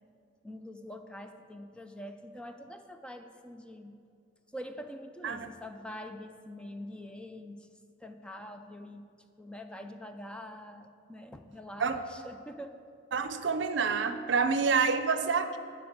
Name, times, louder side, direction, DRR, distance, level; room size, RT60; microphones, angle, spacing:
voice 1, 0.4-4.0 4.5-7.7 8.0-9.0 9.4-12.8, left 1 dB, 5° left, 6 dB, 0.4 m, -45 dB
voice 2, 13.1-15.6, right 5 dB, 70° right, 10 dB, 0.6 m, -28 dB
7.8 x 6.2 x 8.0 m, 2.4 s
head